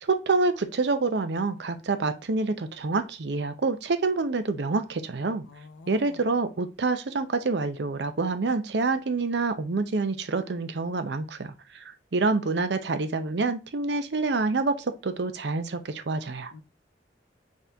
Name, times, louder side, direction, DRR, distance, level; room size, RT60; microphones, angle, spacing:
voice 1, 0.0-5.4 5.9-16.5, right 3 dB, 65° right, 0.6 m, -27 dB
voice 2, 5.5-6.2 16.5-16.6, left 4 dB, 80° left, 0.7 m, -47 dB
4.2 x 3.6 x 3.4 m
head